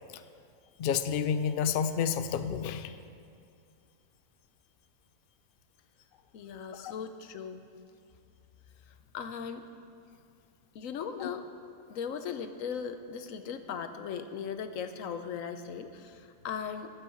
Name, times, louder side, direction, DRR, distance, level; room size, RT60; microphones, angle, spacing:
voice 1, 0.8-2.9 6.7-6.9 11.2-11.3, left 7 dB, 85° left, 10 dB, 0.4 m, -30 dB
voice 2, 6.3-7.6 9.1-9.6 10.7-11.5 11.9-16.9, left 7 dB, 65° left, 9 dB, 1.1 m, -38 dB
14.0 x 5.4 x 8.3 m, 2.3 s
omnidirectional pair, 1.6 m